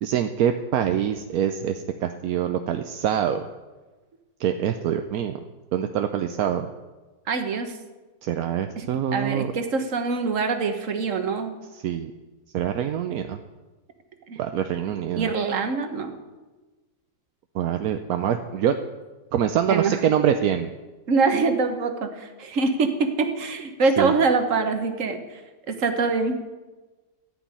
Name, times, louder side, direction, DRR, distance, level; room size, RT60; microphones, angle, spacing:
voice 1, 0.0-3.5 4.4-5.4 5.7-6.7 8.2-9.5 11.7-12.1 12.5-13.4 14.4-15.3 17.5-18.8 19.3-20.7 24.0-24.1, right 9 dB, 65° right, 7 dB, 1.0 m, -25 dB
voice 2, 7.3-7.8 8.8-8.9 9.1-11.5 14.3-14.4 15.2-16.2 19.7-20.0 21.1-25.4 25.7-26.4, right 4 dB, 45° right, 7 dB, 1.5 m, -24 dB
14.0 x 6.1 x 9.7 m, 1.2 s
omnidirectional pair, 2.0 m